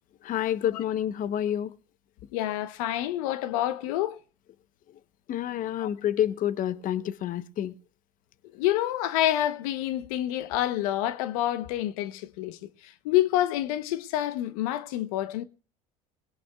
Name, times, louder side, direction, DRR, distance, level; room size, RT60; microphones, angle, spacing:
voice 1, 0.2-1.7 5.3-7.7, left 11 dB, 50° left, 0.9 m, -28 dB
voice 2, 2.3-4.2 5.8-5.9 8.5-15.4, left 13 dB, 80° left, 0.9 m, -28 dB
20.5 x 18.0 x 2.3 m
supercardioid pair, 85°, 18 cm